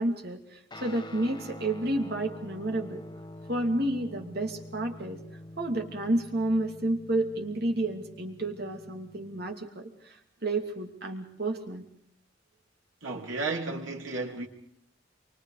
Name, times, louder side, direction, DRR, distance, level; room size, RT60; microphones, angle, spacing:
voice 1, 0.0-3.0 3.5-5.2 5.6-11.8, right 1 dB, 50° right, 2.8 m, -30 dB
Guitar, 0.7-9.5, left 1 dB, 20° left, 1.6 m, -46 dB
voice 2, 13.0-14.5, right 3 dB, 90° right, 3.2 m, -33 dB
28.0 x 24.5 x 5.0 m
head